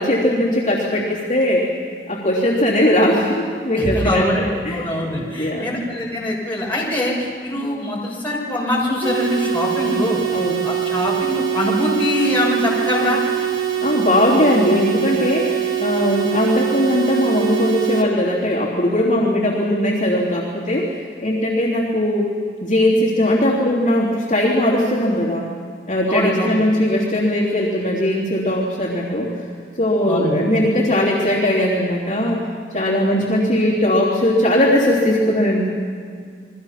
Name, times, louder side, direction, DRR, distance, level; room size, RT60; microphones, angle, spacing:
voice 1, 0.0-1.6 2.1-4.9 5.4-5.8 10.3-10.6 13.8-22.3 22.6-25.5 25.9-29.3 29.8-32.4 32.7-35.7, left 1 dB, 45° left, -6 dB, 3.3 m, -19 dB
voice 2, 3.7-4.4 4.7-10.2 10.6-13.2 26.1-26.5 30.1-30.4, left 1 dB, 10° left, -5 dB, 6.6 m, -22 dB
sound 1, 9.0-18.0, right 11 dB, 80° right, 3.1 m, -23 dB
29.5 x 22.5 x 5.9 m, 2.1 s
head